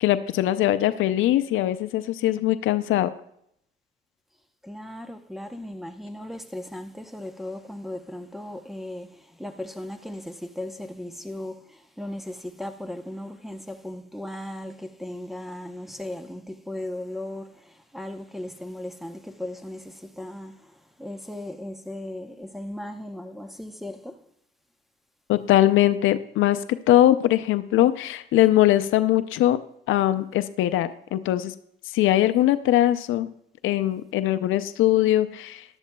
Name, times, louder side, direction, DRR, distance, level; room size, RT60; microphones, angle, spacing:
voice 1, 0.0-3.1 25.3-29.6 29.9-31.5 31.9-33.3 33.6-35.6, left 13 dB, 80° left, 0.5 m, -21 dB
voice 2, 4.6-24.2, left 1 dB, ahead, 0.8 m, -37 dB
16.0 x 11.5 x 2.3 m
cardioid pair, 90°, 20 cm